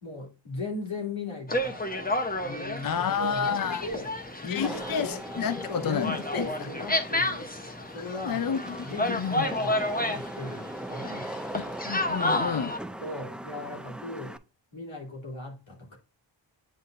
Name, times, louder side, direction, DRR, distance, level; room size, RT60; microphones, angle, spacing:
voice 1, 0.0-1.8 2.4-4.1 4.4-5.4 5.7-7.5 7.9-8.5 8.8-11.3 13.0-14.4 14.7-16.0, left 3 dB, 85° left, 3.0 m, -38 dB
sound 1, 1.5-12.8, left 1 dB, 20° left, 0.9 m, -31 dB
voice 2, 2.8-3.8 4.5-6.5 8.1-8.8 9.1-9.6 11.6-12.7, left 7 dB, 50° left, 0.5 m, -30 dB
Wind / Rain, 2.9-14.4, right 1 dB, ahead, 0.3 m, -41 dB
9.3 x 4.0 x 2.6 m
wide cardioid pair, 75°, 46 cm